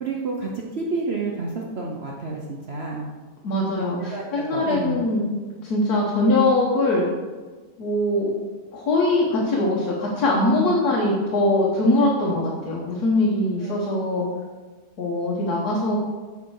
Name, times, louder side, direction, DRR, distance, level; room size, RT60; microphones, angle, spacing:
voice 1, 0.0-3.1 4.0-5.0 13.6-13.8, right 3 dB, 50° right, -1 dB, 0.9 m, -30 dB
voice 2, 3.4-5.3 5.6-7.0 7.8-8.3 8.7-14.3 15.0-16.0, left 2 dB, 80° left, -4 dB, 1.7 m, -22 dB
6.9 x 6.6 x 4.7 m, 1.3 s
omnidirectional pair, 1.6 m